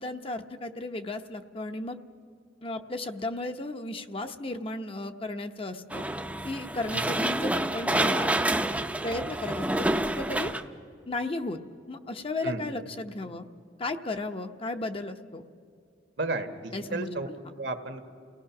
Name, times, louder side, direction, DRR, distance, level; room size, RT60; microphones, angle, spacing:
voice 1, 0.0-2.0 2.6-6.1 6.4-8.3 9.0-10.5 11.1-11.6 11.9-13.5 13.8-15.4 16.7-17.1, left 2 dB, 30° left, 7 dB, 0.8 m, -34 dB
sound 1, 5.9-10.6, right 1 dB, 10° right, 0.6 m, -28 dB
voice 2, 16.2-17.3 17.6-18.1, right 2 dB, 70° right, 6 dB, 1.6 m, -33 dB
30.0 x 18.0 x 6.0 m, 2.3 s
head